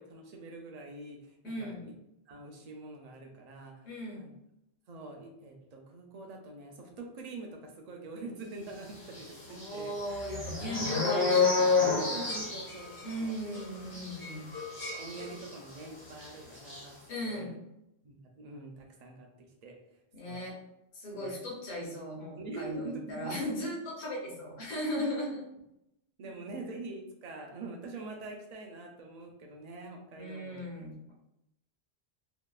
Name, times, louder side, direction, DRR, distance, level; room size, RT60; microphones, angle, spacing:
voice 1, 0.0-1.9 2.3-3.8 4.1-4.3 4.9-9.9 11.8-13.3 13.9-14.3 14.9-17.0 17.2-17.5 18.0-19.3 19.6-19.7 20.2-20.4 21.1-21.3 22.4-23.3 25.0-25.1 26.2-30.6, right 3 dB, 55° right, 2 dB, 0.4 m, -44 dB
voice 2, 1.4-1.9 3.8-4.2 9.5-12.0 13.0-14.5 17.1-17.6 20.1-20.6 20.9-25.4 26.2-26.3 30.2-31.1, equal, 50° left, -3 dB, 0.8 m, -37 dB
sound 1, 9.1-15.8 16.1-16.3 16.5-16.8, left 4 dB, 65° left, 1.3 m, -30 dB
2.7 x 2.3 x 2.3 m, 0.85 s
omnidirectional pair, 1.1 m